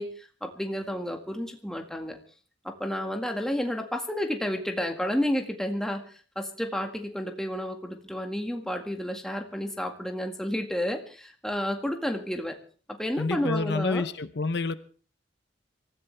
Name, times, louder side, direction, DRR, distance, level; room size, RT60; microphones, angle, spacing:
voice 1, 0.0-2.2 2.6-12.6 12.9-14.0, equal, 5° left, 3 dB, 1.8 m, -31 dB
voice 2, 13.2-14.8, left 3 dB, 65° left, 12 dB, 0.8 m, -28 dB
24.5 x 14.5 x 3.3 m, 0.41 s
head